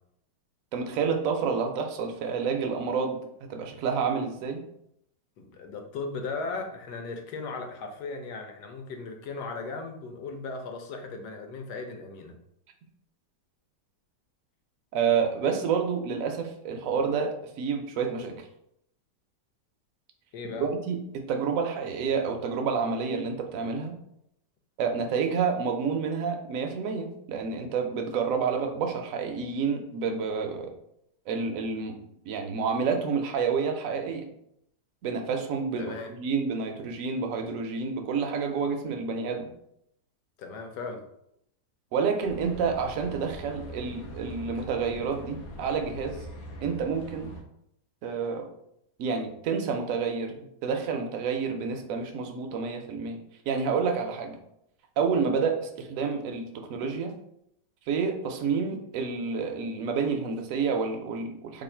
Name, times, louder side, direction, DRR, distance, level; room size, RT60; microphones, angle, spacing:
voice 1, 0.7-4.6 14.9-18.3 20.4-23.9 24.8-30.7 31.3-32.0 32.3-34.3 35.0-39.5 41.9-46.2 46.6-47.3 48.0-48.5 49.0-53.2 53.5-54.4 55.0-57.1 57.9-61.6, right 5 dB, 70° right, 4 dB, 0.8 m, -29 dB
voice 2, 5.4-12.4 20.3-20.7 35.8-36.1 40.4-41.0, left 3 dB, 75° left, 4 dB, 1.2 m, -37 dB
sound 1, 42.2-47.4, equal, 55° left, 0.9 m, -42 dB
3.1 x 2.4 x 4.2 m, 0.75 s
omnidirectional pair, 1.9 m